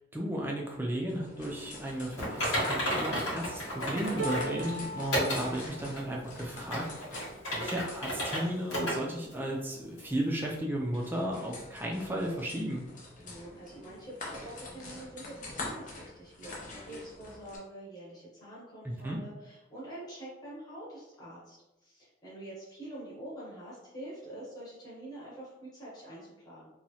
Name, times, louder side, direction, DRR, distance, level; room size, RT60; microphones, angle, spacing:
voice 1, 0.0-6.8 7.5-12.8 18.8-19.2, right 1 dB, 10° right, -1 dB, 0.4 m, -34 dB
sound 1, 1.1-17.6, left 2 dB, 40° left, 0.6 m, -46 dB
Typing, 2.2-4.5 5.1-5.4 6.0-6.1 6.6-8.4 8.7-8.9 9.3-9.4 10.0-10.1, equal, 80° left, 1.2 m, -32 dB
sound 2, 4.2-10.3 10.9-11.1 11.4-12.2 13.1-13.2, right 1 dB, 70° right, 0.5 m, -43 dB
voice 2, 13.2-21.6 21.8-26.7, right 1 dB, 20° left, -9 dB, 1.0 m, -46 dB
3.0 x 2.3 x 2.7 m, 0.95 s
head